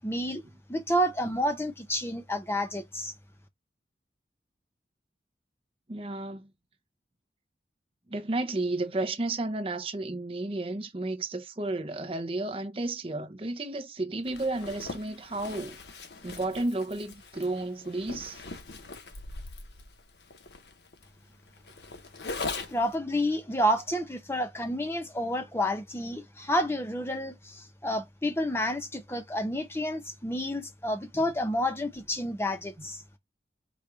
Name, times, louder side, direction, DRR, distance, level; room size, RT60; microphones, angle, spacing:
voice 1, 0.0-0.4 0.7-3.1 22.7-33.0, equal, 15° left, 0.8 m, -30 dB
voice 2, 5.9-6.5 8.1-15.8 16.2-18.4 31.1-31.2 32.8-32.9, right 2 dB, 30° right, 0.7 m, -32 dB
Zipper (clothing), 14.3-23.0, left 3 dB, 70° left, 0.9 m, -41 dB
5.2 x 2.4 x 4.2 m
head